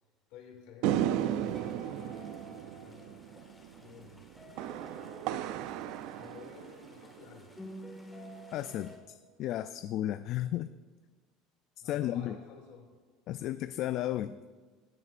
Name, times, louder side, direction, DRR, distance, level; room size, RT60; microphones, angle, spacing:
voice 1, 0.3-1.7 2.4-3.1 3.8-4.2 6.1-7.5 11.8-12.9, left 5 dB, 75° left, 1 dB, 2.4 m, -52 dB
sound 1, 0.8-7.3, right 11 dB, 70° right, 0.4 m, -35 dB
sound 2, 1.1-9.0, right 1 dB, 5° left, 1.8 m, -49 dB
voice 2, 8.5-10.7 11.8-12.3 13.3-14.4, left 13 dB, 55° left, 11 dB, 0.3 m, -34 dB
16.0 x 7.5 x 2.5 m, 1.4 s
supercardioid pair, 110°, 0 cm